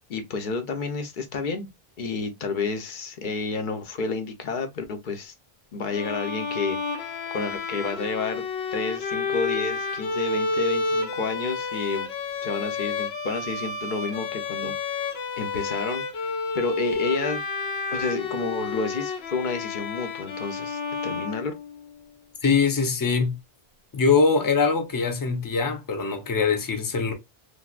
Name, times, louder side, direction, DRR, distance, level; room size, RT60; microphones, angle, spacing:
voice 1, 0.0-1.7 2.0-5.3 5.7-8.4 8.7-12.1 12.4-17.4 17.9-21.6, left 4 dB, 55° left, 0.8 m, -30 dB
Bowed string instrument, 5.9-22.0, left 4 dB, 80° left, 0.9 m, -30 dB
voice 2, 22.4-23.3 23.9-27.1, left 5 dB, 25° left, 0.5 m, -22 dB
3.3 x 2.7 x 2.3 m
omnidirectional pair, 1.0 m